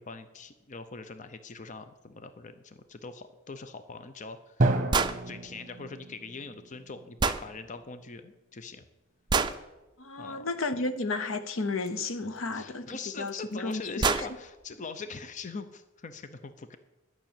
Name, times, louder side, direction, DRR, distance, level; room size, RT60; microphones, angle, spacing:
voice 1, 0.0-8.8 10.2-10.5 12.5-16.8, left 4 dB, 35° left, 0.6 m, -42 dB
Drum, 4.6-8.3, right 2 dB, 40° right, 1.0 m, -32 dB
sound 1, 4.9-5.2 7.2-7.4 9.3-9.6 11.9-12.0 13.3-13.4 13.7-13.8 14.0-14.3, right 4 dB, 20° right, 0.5 m, -26 dB
voice 2, 10.0-14.3, left 3 dB, 80° left, 0.9 m, -33 dB
12.0 x 6.1 x 8.8 m
head